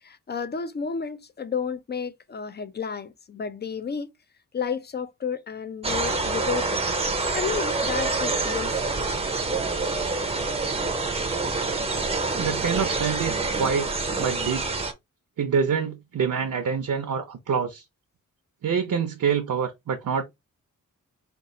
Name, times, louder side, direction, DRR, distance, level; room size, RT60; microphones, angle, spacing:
voice 1, 0.0-4.1 4.5-6.8 7.3-9.0 14.5-14.6, left 6 dB, 30° left, 0.5 m, -32 dB
sound 1, 5.8-14.9, right 3 dB, 20° right, 0.6 m, -27 dB
voice 2, 12.3-14.7 15.4-17.8 18.6-20.2, right 6 dB, 70° right, 0.7 m, -26 dB
4.4 x 2.4 x 3.7 m
wide cardioid pair, 155°, 32 cm